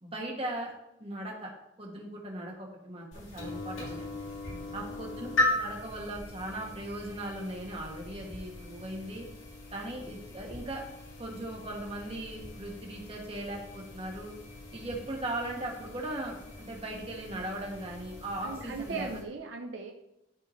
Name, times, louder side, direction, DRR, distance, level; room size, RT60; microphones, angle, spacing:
voice 1, 0.0-0.7 1.0-1.5 1.8-4.3 4.7-9.2 9.7-10.8 11.2-14.3 14.7-19.1, right 1 dB, 30° right, -1 dB, 1.7 m, -38 dB
sound 1, 3.1-19.2, left 2 dB, 85° left, 2.9 m, -38 dB
voice 2, 4.5-4.8 18.4-19.9, right 4 dB, 70° right, 3 dB, 0.8 m, -39 dB
12.0 x 5.0 x 3.2 m, 0.89 s
head